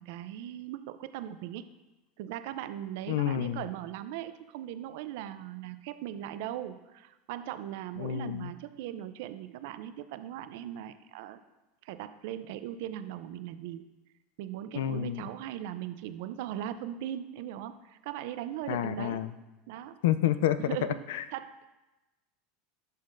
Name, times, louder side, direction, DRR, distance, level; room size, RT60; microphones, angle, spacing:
voice 1, 0.0-1.6 2.2-11.4 11.8-13.9 14.4-19.3 19.7-20.0 20.6-21.0 21.3-21.6, right 11 dB, 75° right, 12 dB, 0.4 m, -39 dB
voice 2, 3.1-3.6 8.0-8.5 14.7-15.2 18.7-19.3 20.0-20.6 21.1-21.2, left 11 dB, 85° left, 13 dB, 0.4 m, -29 dB
10.5 x 5.6 x 2.5 m, 1.1 s
supercardioid pair, 115°, 0 cm